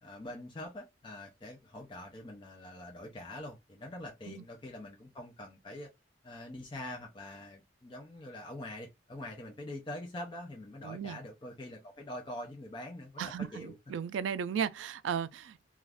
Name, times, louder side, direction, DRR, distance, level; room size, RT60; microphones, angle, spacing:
voice 1, 0.0-5.9 6.2-13.8, left 1 dB, 25° left, 0.4 m, -44 dB
voice 2, 10.8-11.2 13.2-15.7, right 7 dB, 85° right, 0.3 m, -35 dB
2.4 x 2.3 x 3.3 m
head